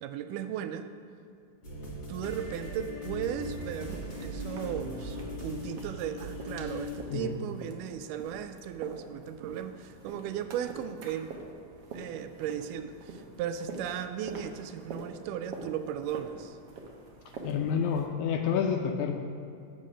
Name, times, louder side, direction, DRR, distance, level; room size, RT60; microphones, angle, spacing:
voice 1, 0.0-0.9 2.1-11.3 11.9-16.6, right 9 dB, 85° right, 10 dB, 2.1 m, -36 dB
sound 1, 1.6-7.0, equal, 25° left, 2.0 m, -39 dB
sound 2, 3.3-18.1, right 3 dB, 65° right, 1.6 m, -46 dB
voice 2, 17.4-19.1, left 7 dB, 80° left, 4 dB, 1.8 m, -28 dB
9.0 x 7.6 x 5.5 m, 2.5 s
omnidirectional pair, 3.8 m